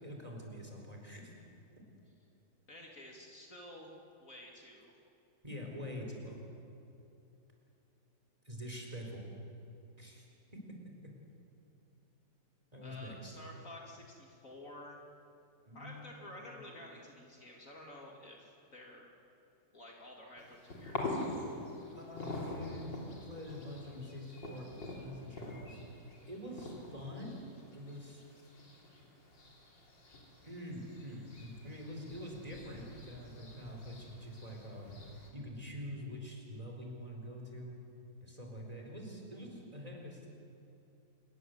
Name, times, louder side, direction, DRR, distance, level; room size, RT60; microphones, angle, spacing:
voice 1, 0.0-1.3 5.4-6.4 8.4-9.2 9.9-10.2 10.5-10.6 11.0-11.1 12.7-13.3 15.7-16.9 21.9-25.8 26.3-27.3 27.7-28.2 30.4-35.0 35.3-37.8 38.2-40.3, equal, 20° right, 0 dB, 4.4 m, -45 dB
voice 2, 2.7-3.9 4.2-4.9 12.8-15.0 15.7-19.1 19.7-21.2, left 1 dB, 45° left, -1 dB, 3.0 m, -51 dB
sound 1, 20.4-35.3, left 2 dB, 85° left, 4.3 m, -45 dB
27.0 x 21.0 x 8.0 m, 2.8 s
omnidirectional pair, 1.9 m